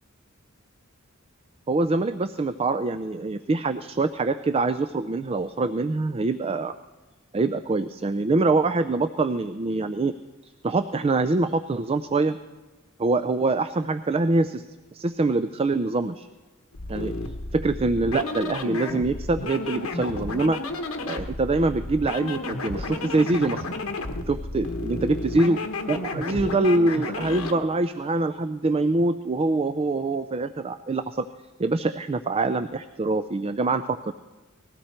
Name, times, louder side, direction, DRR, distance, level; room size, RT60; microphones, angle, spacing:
voice 1, 1.7-6.7 7.3-10.1 10.4-12.4 13.0-14.7 14.9-16.3 16.9-17.1 17.5-20.6 21.1-23.7 24.3-25.6 25.9-31.3 31.6-34.1, right 3 dB, 30° right, 10 dB, 0.4 m, -24 dB
sound 1, 16.7-27.6, left 2 dB, 80° left, 1.2 m, -32 dB
19.5 x 16.0 x 4.4 m, 1.2 s
head